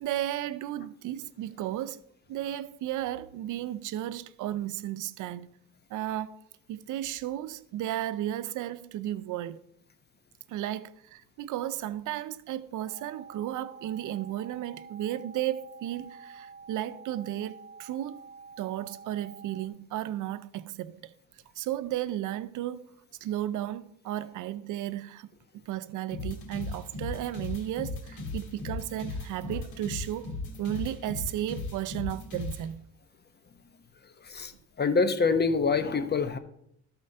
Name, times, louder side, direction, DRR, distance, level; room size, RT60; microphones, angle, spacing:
voice 1, 0.0-2.0 2.3-5.5 5.9-6.4 6.7-9.6 10.5-18.2 18.6-21.1 21.6-22.9 23.2-25.3 25.5-30.3 30.6-32.8, right 12 dB, 80° right, 0.6 m, -34 dB
sound 1, 12.9-19.7, right 5 dB, 20° right, 1.1 m, -48 dB
sound 2, 26.1-32.6, left 3 dB, 80° left, 2.4 m, -36 dB
voice 2, 34.8-36.4, left 4 dB, 35° left, 0.9 m, -25 dB
13.0 x 4.4 x 5.4 m
cardioid pair, 90°, 30 cm